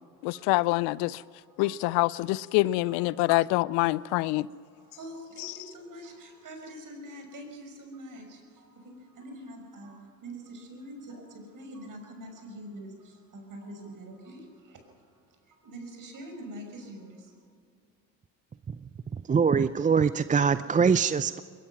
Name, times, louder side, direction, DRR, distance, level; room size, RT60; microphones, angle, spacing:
voice 1, 0.2-1.2 1.6-4.5, left 19 dB, 70° left, 0.6 m, -25 dB
voice 2, 1.0-1.9 2.9-17.4, right 1 dB, 50° right, 5.9 m, -46 dB
voice 3, 19.3-21.4, right 6 dB, 20° right, 0.5 m, -23 dB
21.5 x 20.5 x 6.0 m
hypercardioid pair, 60°, 41 cm